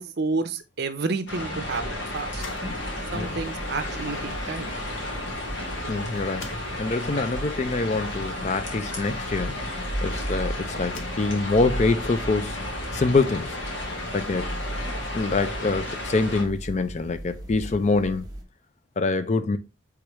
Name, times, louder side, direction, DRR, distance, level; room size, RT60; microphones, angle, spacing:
voice 1, 0.0-2.7 3.1-4.7 14.0-14.1, right 3 dB, 55° right, 0.6 m, -30 dB
sound 1, 1.3-16.4, left 1 dB, 70° left, 1.5 m, -33 dB
sound 2, 2.1-10.0 10.7-11.7, left 4 dB, 85° left, 0.7 m, -48 dB
sound 3, 2.3-18.4, right 1 dB, 20° right, 1.0 m, -37 dB
voice 2, 5.9-6.5 6.8-12.6 12.9-13.6 14.1-14.5 15.1-18.3 19.0-19.6, left 3 dB, 35° left, 0.4 m, -25 dB
4.8 x 3.5 x 3.0 m
head